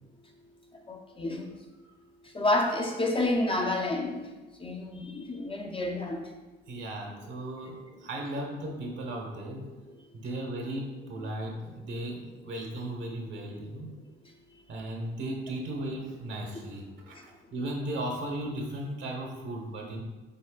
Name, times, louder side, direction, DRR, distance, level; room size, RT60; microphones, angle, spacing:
voice 1, 0.9-1.5 2.3-4.2 4.6-6.2, left 2 dB, 25° left, 1 dB, 0.7 m, -29 dB
voice 2, 6.7-9.7 10.1-13.9 14.7-20.0, right 1 dB, 70° right, 0 dB, 1.2 m, -36 dB
5.4 x 4.2 x 2.3 m, 1.2 s
cardioid pair, 90°, 20 cm